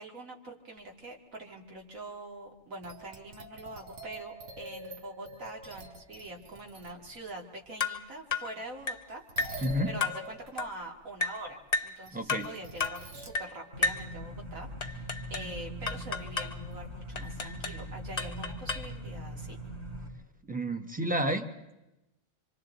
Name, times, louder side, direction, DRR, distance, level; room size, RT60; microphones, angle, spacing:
voice 1, 0.0-19.6, right 2 dB, 85° right, 0 dB, 2.6 m, -44 dB
sound 1, 0.8-0.9 1.8-1.9 2.8-7.3 8.7-15.5 16.7-16.9 17.2-17.6 19.6-19.7, right 1 dB, 65° right, 1.5 m, -47 dB
sound 2, 7.8-8.0 8.3-8.5 8.9-9.1 9.4-9.6 10.0-10.2 10.6-10.8 11.2-11.4 11.7-12.0 12.3-12.5 12.8-13.0 13.3-13.5 13.8-14.1 14.8-15.5 15.9-16.6 17.2-17.8 18.2-18.9, left 4 dB, 35° left, 0.9 m, -32 dB
voice 2, 9.6-9.9 12.1-12.5 20.5-21.5, equal, 5° right, 6 dB, 0.8 m, -30 dB
sound 3, 13.7-20.1, equal, 45° right, 3.2 m, -41 dB
26.0 x 25.5 x 4.0 m, 0.97 s
omnidirectional pair, 1.4 m